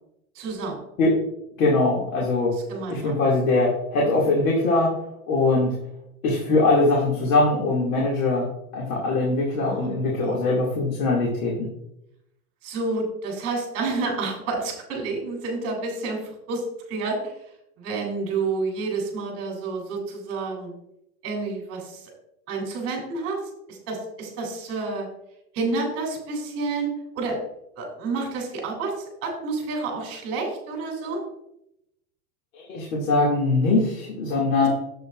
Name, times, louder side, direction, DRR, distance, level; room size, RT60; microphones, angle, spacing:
voice 1, 0.3-0.8 2.7-3.2 9.6-9.9 10.2-10.4 12.6-17.3 17.8-20.7 21.2-22.1 22.5-25.1 25.5-27.4 27.7-31.2 34.6-34.7, right 3 dB, 30° right, 1 dB, 3.3 m, -29 dB
voice 2, 1.6-2.6 2.9-4.9 5.3-5.8 6.2-11.7 32.5-34.7, left 2 dB, 60° left, -3 dB, 2.4 m, -22 dB
10.5 x 7.8 x 2.5 m, 0.82 s
supercardioid pair, 155°, 46 cm